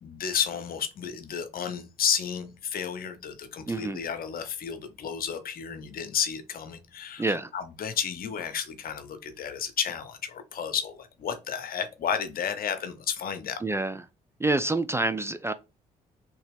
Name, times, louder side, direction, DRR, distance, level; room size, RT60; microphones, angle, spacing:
voice 1, 0.0-13.6, left 7 dB, 55° left, 0.7 m, -32 dB
voice 2, 3.7-4.0 7.2-7.5 13.6-14.0 14.4-15.5, right 2 dB, 15° right, 0.3 m, -27 dB
3.2 x 2.9 x 3.3 m
hypercardioid pair, 50°, 18 cm